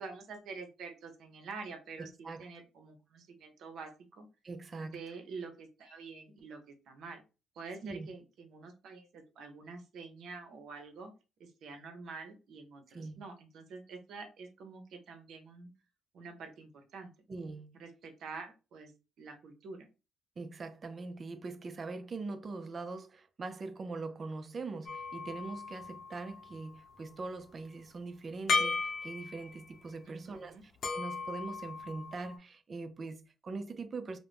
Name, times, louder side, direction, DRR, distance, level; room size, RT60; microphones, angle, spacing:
voice 1, 0.0-4.3 4.8-7.2 7.5-11.1 11.4-15.7 16.1-17.1 17.7-18.9 19.2-19.9 30.0-30.6, right 4 dB, 75° right, 0.8 m, -47 dB
voice 2, 2.0-2.4 4.4-5.0 7.8-8.1 12.9-13.2 17.3-17.8 20.4-34.2, right 3 dB, 40° right, 0.4 m, -42 dB
sound 1, 24.9-26.5 28.5-29.8 30.8-32.4, left 4 dB, 70° left, 0.7 m, -36 dB
2.5 x 2.1 x 3.4 m
cardioid pair, 90°, 0 cm